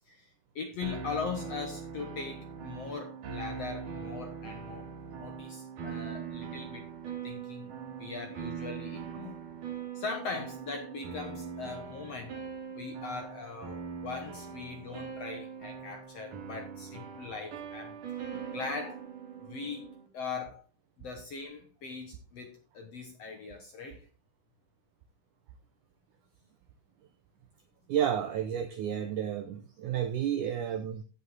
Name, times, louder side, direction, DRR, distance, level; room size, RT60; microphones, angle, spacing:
voice 1, 0.1-6.9 7.2-9.4 9.9-12.4 12.7-18.0 18.5-19.1 19.4-20.6 21.0-24.1, left 4 dB, 60° left, 1.7 m, -40 dB
sound 1, 0.8-20.1, right 6 dB, 60° right, 3.1 m, -41 dB
voice 2, 27.9-31.0, right 9 dB, 80° right, 1.8 m, -31 dB
15.5 x 5.6 x 3.9 m
omnidirectional pair, 4.5 m